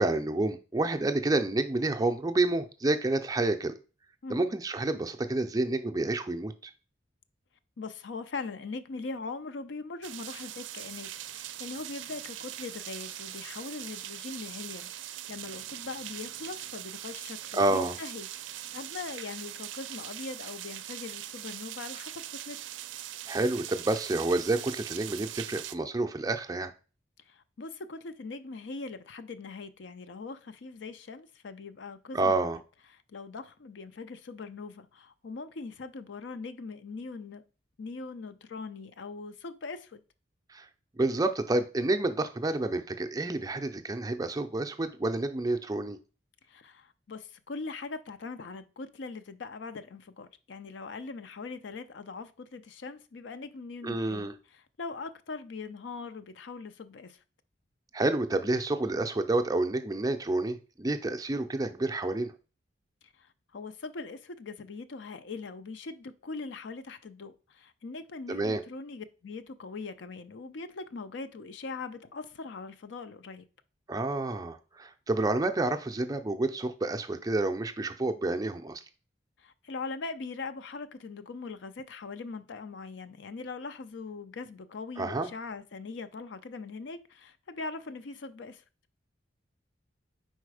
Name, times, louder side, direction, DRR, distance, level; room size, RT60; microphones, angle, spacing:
voice 1, 0.0-3.8 4.3-6.7 17.5-18.0 23.3-26.7 32.1-32.6 40.5-40.7 41.0-46.0 53.8-54.4 57.9-62.3 68.3-68.6 73.9-78.8 85.0-85.3, right 2 dB, 20° right, 0.4 m, -29 dB
voice 2, 7.8-22.6 27.3-32.5 33.1-37.4 37.8-40.0 46.5-57.2 63.2-73.4 79.4-88.6, left 4 dB, 75° left, 0.5 m, -41 dB
sound 1, 10.0-25.8, right 13 dB, 80° right, 0.4 m, -41 dB
4.7 x 4.2 x 4.8 m
head